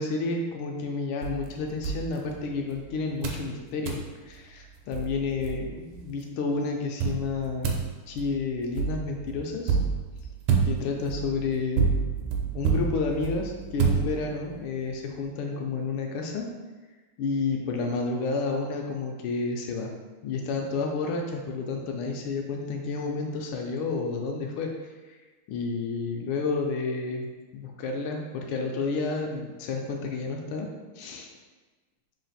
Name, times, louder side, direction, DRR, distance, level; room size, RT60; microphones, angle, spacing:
voice 1, 0.0-4.0 4.3-7.8 8.1-9.8 10.6-11.9 12.5-16.5 17.2-19.9 20.2-24.7 25.1-25.2 25.5-30.7 31.0-31.3, left 4 dB, 80° left, 1 dB, 1.3 m, -30 dB
sound 1, 1.2-2.8 3.2-3.5 3.9-4.1 4.6-4.7 4.9-6.0 7.0-14.6, right 6 dB, 80° right, 1.3 m, -29 dB
3.7 x 2.5 x 3.9 m, 1.3 s
omnidirectional pair, 2.4 m